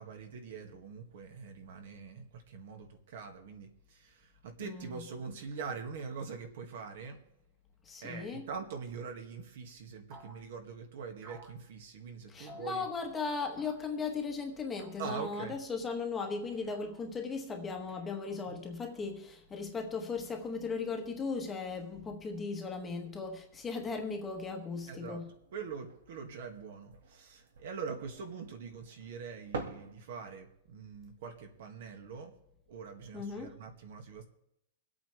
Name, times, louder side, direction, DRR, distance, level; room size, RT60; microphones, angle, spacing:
voice 1, 0.0-7.2 8.0-12.9 15.0-15.6 18.5-18.6 24.9-25.2 25.5-32.3 32.7-34.2, right 5 dB, 60° right, 2.0 m, -43 dB
voice 2, 4.6-4.9 7.8-8.5 12.3-25.3 33.1-33.5, left 4 dB, 10° left, 1.2 m, -37 dB
sound 1, 10.1-10.4 11.2-11.6 12.5-12.8 13.6-13.9 14.8-15.1 16.5-17.0 17.9-18.6, right 1 dB, 30° right, 1.7 m, -54 dB
sound 2, 12.8-29.9, right 4 dB, 80° right, 2.1 m, -52 dB
24.5 x 8.5 x 3.4 m
supercardioid pair, 170°, 0 cm